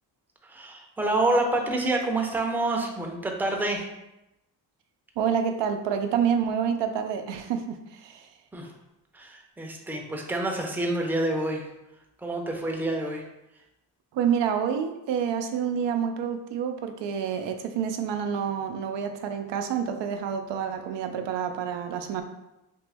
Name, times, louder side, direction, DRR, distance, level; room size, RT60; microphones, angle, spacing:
voice 1, 0.4-3.9 8.5-8.7 9.1-11.7 12.2-13.2, right 2 dB, 5° right, 1 dB, 0.5 m, -27 dB
voice 2, 5.2-8.3 14.1-22.2, right 7 dB, 90° right, 6 dB, 0.5 m, -28 dB
3.6 x 2.9 x 3.4 m, 0.91 s
cardioid pair, 115°, 42 cm